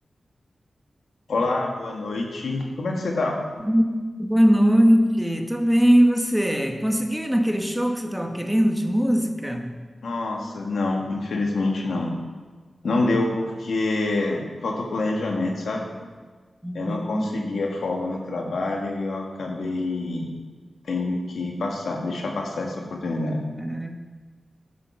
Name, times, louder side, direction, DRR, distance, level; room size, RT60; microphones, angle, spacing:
voice 1, 1.3-3.4 10.0-12.1 12.8-15.8 16.7-20.2 20.8-23.4, left 2 dB, 90° left, 0 dB, 1.7 m, -26 dB
voice 2, 4.2-9.8 16.6-17.4 23.6-23.9, equal, 5° right, 4 dB, 1.2 m, -21 dB
10.5 x 7.6 x 5.8 m, 1.4 s
cardioid pair, 60°, 0 cm